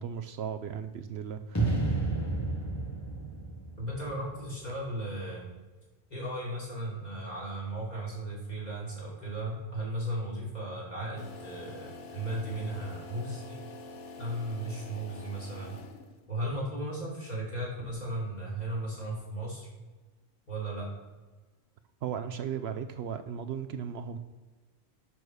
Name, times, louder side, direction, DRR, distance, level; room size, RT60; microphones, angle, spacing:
voice 1, 0.0-1.8 17.0-17.1 22.0-24.2, right 7 dB, 70° right, 8 dB, 0.8 m, -36 dB
sound 1, 1.5-4.7, right 3 dB, 15° left, 0.9 m, -31 dB
voice 2, 3.8-5.5 6.1-13.6 14.2-15.8 16.3-19.7 20.5-20.9, right 1 dB, 35° left, -6 dB, 3.3 m, -36 dB
sound 2, 11.2-16.3, left 3 dB, 80° left, 1.2 m, -46 dB
7.0 x 6.2 x 6.3 m, 1.3 s
omnidirectional pair, 1.2 m